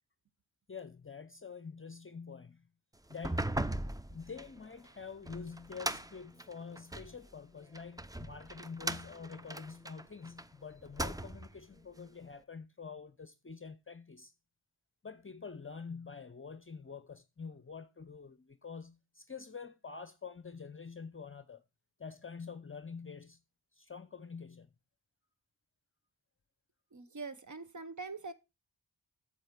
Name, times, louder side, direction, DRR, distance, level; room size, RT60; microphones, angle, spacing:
voice 1, 0.7-2.7 3.1-3.7 4.1-14.3 15.0-21.6 22.0-23.4 23.7-24.7, left 5 dB, 30° left, 0.7 m, -47 dB
sound 1, 3.1-7.2 7.7-10.5 10.8-11.6, right 1 dB, 10° right, 0.5 m, -39 dB
voice 2, 26.9-28.3, right 4 dB, 45° right, 0.9 m, -43 dB
7.8 x 7.3 x 5.1 m
cardioid pair, 60°, 41 cm